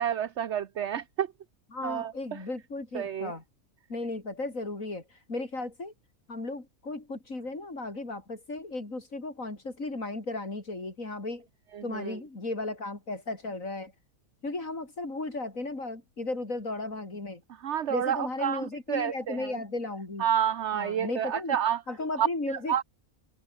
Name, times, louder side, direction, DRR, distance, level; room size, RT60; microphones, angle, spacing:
voice 1, 0.0-1.3 1.8-2.4 2.9-3.3 11.7-12.2 17.6-19.5 20.2-21.8 22.2-22.8, right 9 dB, 55° right, 1.1 m, -29 dB
voice 2, 1.7-3.4 3.9-5.0 5.3-5.9 6.3-11.5 11.8-13.9 14.4-17.4 17.9-20.3 20.7-21.6 21.9-22.8, left 2 dB, 60° left, 5.0 m, -35 dB
omnidirectional pair, 1.6 m